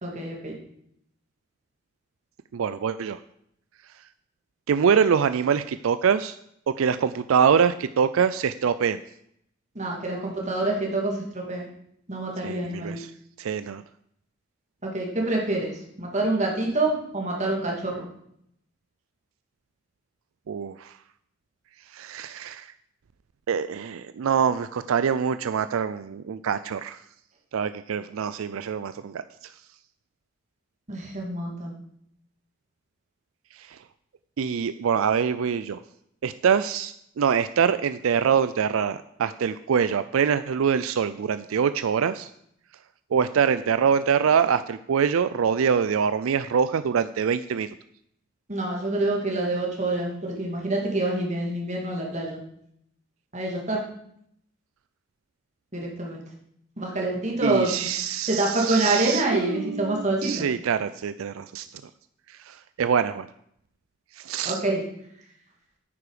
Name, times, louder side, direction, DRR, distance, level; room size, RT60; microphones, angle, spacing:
voice 1, 0.0-0.5 9.7-11.6 12.1-13.0 14.8-15.7 16.0-18.0 30.9-31.7 48.5-52.4 53.3-53.8 55.7-56.2 56.8-57.7 58.3-60.4 64.4-64.8, right 2 dB, 35° right, -1 dB, 2.6 m, -26 dB
voice 2, 2.5-3.2 4.7-6.4 6.7-9.0 12.4-13.1 13.4-13.8 20.5-20.9 21.9-22.7 23.5-27.0 27.5-29.5 33.5-33.8 34.4-35.8 36.2-42.3 43.1-47.8 57.4-61.7 62.3-63.3 64.1-64.6, right 7 dB, 80° right, 13 dB, 0.4 m, -24 dB
9.6 x 8.6 x 5.0 m, 0.72 s
head